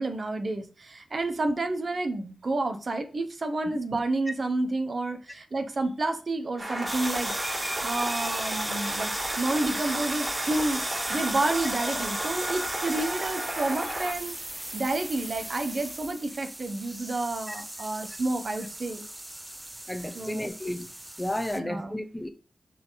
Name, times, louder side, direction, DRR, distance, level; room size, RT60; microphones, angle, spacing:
voice 1, 0.0-14.3 14.7-19.0 20.1-20.5 21.5-22.0, right 2 dB, 55° right, 1.2 m, -30 dB
sound 1, 6.6-14.1, right 1 dB, 35° right, 3.4 m, -33 dB
sound 2, 6.9-21.6, right 1 dB, 20° right, 0.6 m, -36 dB
voice 2, 19.9-20.9 21.2-22.3, left 1 dB, 10° left, 1.0 m, -32 dB
6.5 x 4.4 x 4.1 m
cardioid pair, 60°, 0 cm